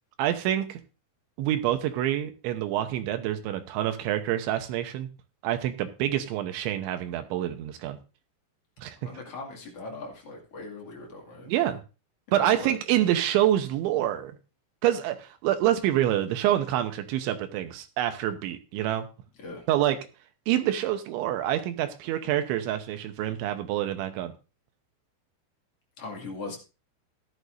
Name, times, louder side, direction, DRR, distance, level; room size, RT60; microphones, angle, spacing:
voice 1, 0.2-0.8 1.4-5.1 5.4-8.0 8.8-9.1 11.5-11.8 12.3-14.4 14.8-19.1 19.7-20.0 20.5-24.3, right 12 dB, 80° right, 8 dB, 3.0 m, -27 dB
voice 2, 9.0-11.5 12.3-12.7 19.4-19.6 26.0-26.6, left 3 dB, 45° left, -1 dB, 2.2 m, -39 dB
14.5 x 11.5 x 2.6 m, 0.31 s
omnidirectional pair, 5.9 m